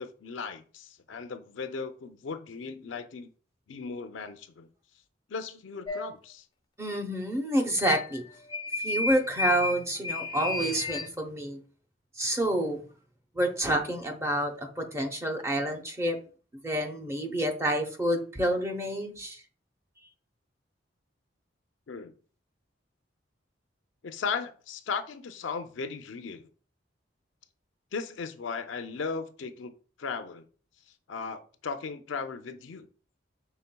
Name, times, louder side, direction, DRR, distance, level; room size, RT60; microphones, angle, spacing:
voice 1, 0.0-3.3 3.7-4.7 5.3-6.4 21.9-22.1 24.0-26.5 27.9-29.7 30.0-30.5 31.1-32.9, left 5 dB, 90° left, 8 dB, 0.5 m, -36 dB
sound 1, 5.9-6.1 7.8-8.2 8.5-11.1, left 3 dB, 25° left, 0.4 m, -31 dB
voice 2, 6.8-8.2 8.8-11.6 12.2-12.9 13.3-16.2 16.6-19.4, right 1 dB, 15° right, 4 dB, 0.7 m, -28 dB
5.6 x 3.4 x 2.2 m, 0.40 s
head